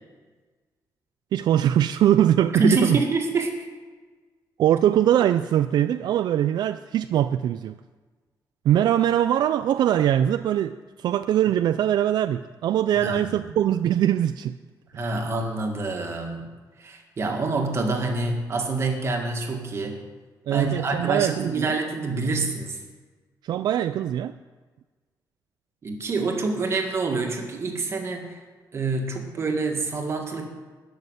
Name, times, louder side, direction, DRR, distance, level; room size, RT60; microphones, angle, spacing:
voice 1, 1.3-3.0 4.6-7.8 8.6-14.6 20.5-21.8 23.4-24.4, right 11 dB, 75° right, 12 dB, 0.4 m, -22 dB
voice 2, 2.5-3.5 12.9-13.4 14.9-16.5 16.8-20.0 20.5-22.8 25.8-28.4 28.7-30.5, right 3 dB, 40° right, 3 dB, 2.0 m, -26 dB
13.5 x 6.5 x 9.9 m, 1.4 s
wide cardioid pair, 155°, 7 cm